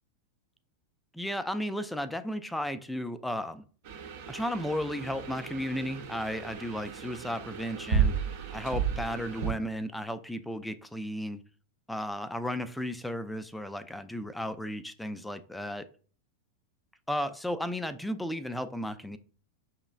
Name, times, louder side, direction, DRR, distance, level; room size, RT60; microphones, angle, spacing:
voice 1, 1.1-3.6 4.3-8.1 8.5-11.4 11.9-15.9 17.1-19.2, equal, 5° left, 0.4 m, -34 dB
sound 1, 3.9-9.5, right 7 dB, 50° right, 0.7 m, -33 dB
6.3 x 3.0 x 2.3 m
figure-of-eight pair, 90°, 0 cm